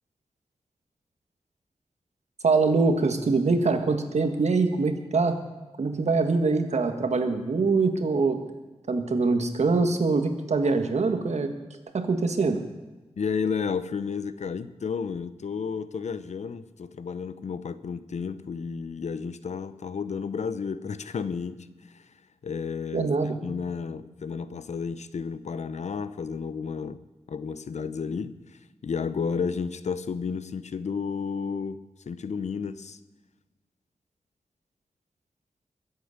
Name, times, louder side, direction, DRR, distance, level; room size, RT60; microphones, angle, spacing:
voice 1, 2.4-5.4 5.8-8.4 8.9-11.5 11.9-12.6 22.9-23.3, right 4 dB, 75° right, 1.7 m, -24 dB
voice 2, 13.2-22.0 22.4-23.1 23.4-27.0 27.3-28.4 28.8-33.0, left 5 dB, 85° left, 0.8 m, -32 dB
22.0 x 8.4 x 6.6 m
wide cardioid pair, 105°, 11 cm